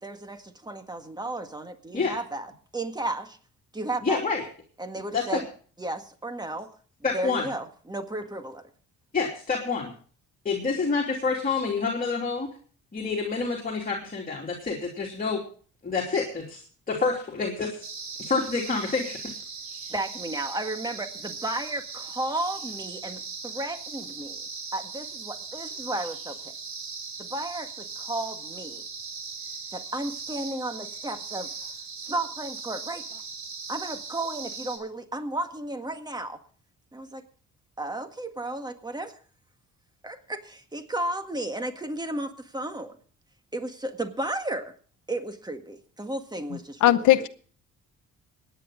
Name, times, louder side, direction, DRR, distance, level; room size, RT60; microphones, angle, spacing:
voice 1, 0.0-2.5 2.7-3.4 3.7-4.2 4.8-5.4 5.8-6.7 7.1-8.6 19.9-24.4 24.7-26.5 27.2-28.8 29.7-31.5 32.1-33.2 33.7-36.4 36.9-37.2 37.8-39.1 40.0-42.9 43.5-44.7 45.1-47.3, right 2 dB, 15° right, 1.8 m, -33 dB
voice 2, 4.0-4.4 5.1-5.4 7.0-7.5 9.1-9.9 10.4-12.5 12.9-15.4 15.8-17.8 18.2-19.3, left 4 dB, 30° left, 2.9 m, -28 dB
sound 1, 17.8-34.8, right 5 dB, 70° right, 3.1 m, -39 dB
voice 3, 46.5-47.3, left 14 dB, 80° left, 0.7 m, -20 dB
23.5 x 9.7 x 3.8 m
cardioid pair, 90°, 30 cm